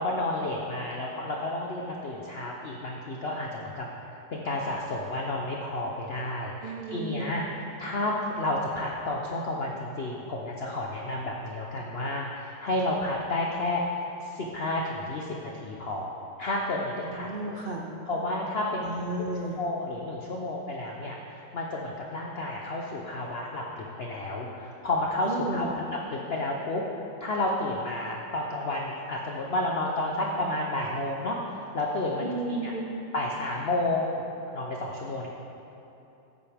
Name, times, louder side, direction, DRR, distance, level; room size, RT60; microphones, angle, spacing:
voice 1, 0.0-3.9 4.3-17.6 18.1-18.8 19.1-19.2 19.6-26.8 27.2-32.7 33.1-34.2 34.5-35.3, left 2 dB, 55° left, -1 dB, 0.7 m, -31 dB
voice 2, 6.6-7.4 17.1-17.9 18.8-19.6 25.3-25.7 32.2-32.9, right 2 dB, 60° right, -3 dB, 0.5 m, -33 dB
14.5 x 9.2 x 3.5 m, 2.9 s
omnidirectional pair, 2.1 m